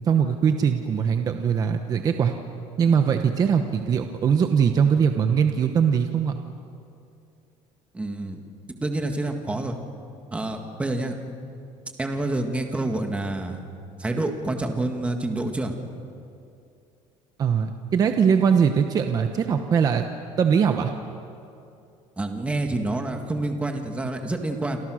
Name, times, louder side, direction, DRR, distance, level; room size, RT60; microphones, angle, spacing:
voice 1, 0.0-2.3 2.8-6.3 17.4-20.0 20.4-20.9, right 7 dB, 30° right, 6 dB, 1.0 m, -21 dB
voice 2, 7.9-8.4 8.8-9.8 10.3-11.1 12.0-13.6 14.0-15.7 22.2-24.8, right 2 dB, 10° right, 4 dB, 1.9 m, -27 dB
28.5 x 27.0 x 6.4 m, 2.6 s
cardioid pair, 160°, 12 cm